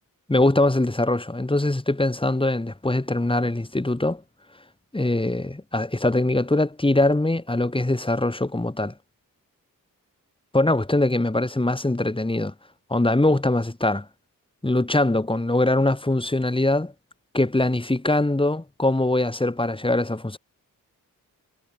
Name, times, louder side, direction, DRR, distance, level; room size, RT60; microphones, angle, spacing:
voice 1, 0.3-4.2 4.9-8.9 10.5-12.5 12.9-14.1 14.6-16.9 17.3-20.4, left 2 dB, 15° left, 3.6 m, -22 dB
cardioid pair, 75°, 35 cm